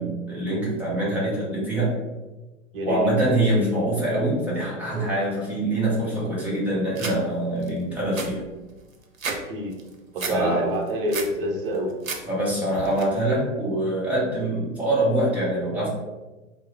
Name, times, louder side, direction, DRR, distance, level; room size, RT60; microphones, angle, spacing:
voice 1, 0.0-1.9 2.8-8.4 10.3-10.7 12.3-15.9, right 1 dB, 5° right, -7 dB, 0.7 m, -24 dB
sound 1, 7.0-7.2 7.6-7.7 8.0-9.4 9.7-10.4 10.8-11.3 11.7-12.2 12.5-13.0, right 4 dB, 80° right, 0.6 m, -32 dB
voice 2, 9.3-9.7 10.1-11.9, equal, 45° right, 0 dB, 0.6 m, -27 dB
2.9 x 2.0 x 3.6 m, 1.1 s
figure-of-eight pair, 105°, 40 cm